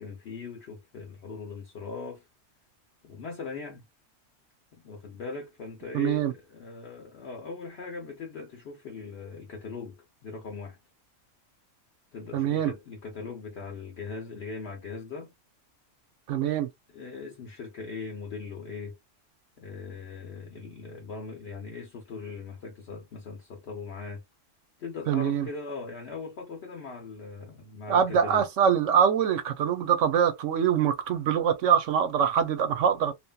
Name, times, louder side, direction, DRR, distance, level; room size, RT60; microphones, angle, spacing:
voice 1, 0.0-2.3 3.0-3.8 4.7-10.8 12.1-15.3 16.9-19.0 19.6-24.2 24.8-28.5, left 4 dB, 60° left, 0.9 m, -40 dB
voice 2, 5.9-6.3 12.3-12.7 16.3-16.7 25.1-25.5 27.9-33.1, right 8 dB, 70° right, 1.0 m, -24 dB
2.8 x 2.5 x 2.2 m
omnidirectional pair, 1.3 m